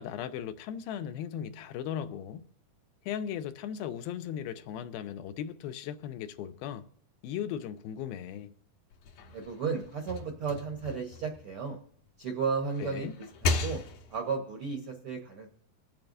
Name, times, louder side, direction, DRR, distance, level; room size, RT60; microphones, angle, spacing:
voice 1, 0.0-2.4 3.1-6.9 7.2-8.5 12.8-13.1, left 9 dB, 85° left, 2.6 m, -37 dB
sound 1, 8.9-12.1 12.5-14.3, left 3 dB, 70° left, 2.7 m, -36 dB
voice 2, 9.3-11.8 12.2-13.1 13.4-13.8 14.1-15.5, right 5 dB, 70° right, 1.3 m, -34 dB
26.5 x 8.9 x 2.6 m
omnidirectional pair, 4.2 m